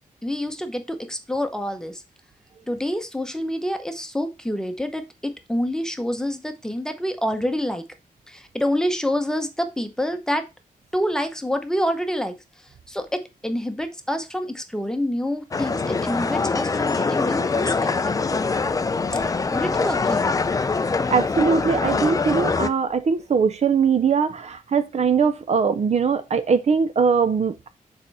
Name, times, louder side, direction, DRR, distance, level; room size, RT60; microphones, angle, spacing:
voice 1, 0.2-2.0 2.7-7.8 8.3-10.5 10.9-12.3 12.9-18.2 19.5-20.4, equal, 5° left, 0.8 m, -27 dB
sound 1, 15.5-22.7, left 4 dB, 25° left, 0.4 m, -23 dB
voice 2, 21.1-27.7, right 6 dB, 50° right, 0.5 m, -21 dB
6.8 x 4.3 x 4.0 m
wide cardioid pair, 155°, 15 cm